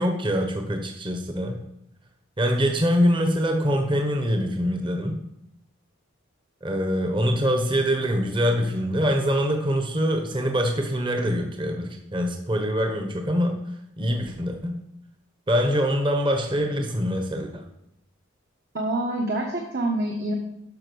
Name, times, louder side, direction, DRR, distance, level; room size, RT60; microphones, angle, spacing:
voice 1, 0.0-1.6 2.4-5.2 6.6-13.6 14.0-14.8 15.5-17.6, equal, 25° right, 4 dB, 1.1 m, -24 dB
voice 2, 18.7-20.3, right 1 dB, 50° right, 0 dB, 1.4 m, -26 dB
12.0 x 6.1 x 6.3 m, 0.79 s
head